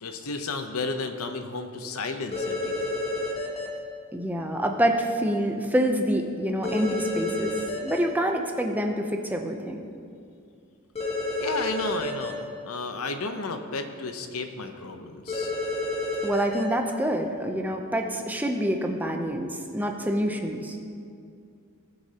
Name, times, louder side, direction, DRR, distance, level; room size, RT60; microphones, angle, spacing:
voice 1, 0.0-2.9 11.4-15.5, left 3 dB, 80° left, 6 dB, 0.8 m, -33 dB
sound 1, 2.3-3.7 6.6-8.0 11.0-12.3 15.3-16.6, left 2 dB, 30° left, 1.4 m, -29 dB
voice 2, 4.1-7.5 7.8-9.8 16.2-20.8, equal, 10° right, 3 dB, 0.6 m, -26 dB
18.5 x 6.4 x 2.9 m, 2.4 s
head